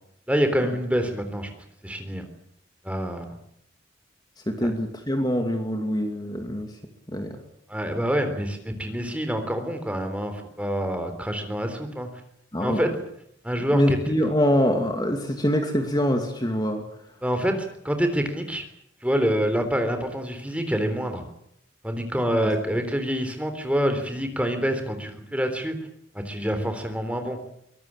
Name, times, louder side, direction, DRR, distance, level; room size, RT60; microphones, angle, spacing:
voice 1, 0.3-1.5 1.8-2.2 2.8-3.3 4.6-4.7 7.7-12.1 12.6-12.9 13.4-14.1 17.2-18.6 19.0-21.2 21.8-25.8 26.1-27.4, equal, 5° right, 7 dB, 3.7 m, -26 dB
voice 2, 4.5-6.7 7.1-7.4 12.5-12.8 13.7-16.8 22.3-22.5, equal, 20° left, 5 dB, 2.5 m, -24 dB
23.5 x 19.5 x 8.8 m, 0.72 s
head